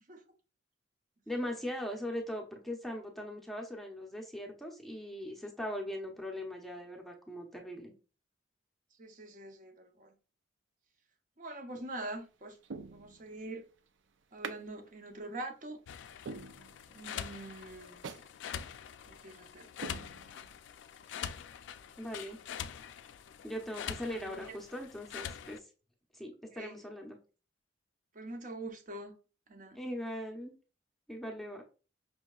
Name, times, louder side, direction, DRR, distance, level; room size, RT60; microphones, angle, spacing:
voice 1, 1.3-7.9 22.0-22.4 23.4-25.7 26.1-27.2 29.7-30.5 31.1-31.6, equal, ahead, 0.7 m, -40 dB
voice 2, 9.0-10.1 11.4-12.5 12.9-13.6 14.3-15.8 16.9-18.0 19.1-19.7 24.0-24.4 26.5-26.8 28.2-29.1 29.5-29.8, right 2 dB, 45° right, 0.7 m, -44 dB
sound 1, 11.7-12.1 12.6-13.5 14.4-14.6 15.1-15.2 15.7-15.8 16.3-17.1 17.5-17.6 18.0-18.3 18.7-18.8 19.3-19.4 19.8-20.7 21.1-21.2, right 4 dB, 85° right, 0.4 m, -45 dB
sound 2, 15.9-25.6, left 8 dB, 80° left, 0.3 m, -44 dB
5.3 x 2.8 x 2.3 m
head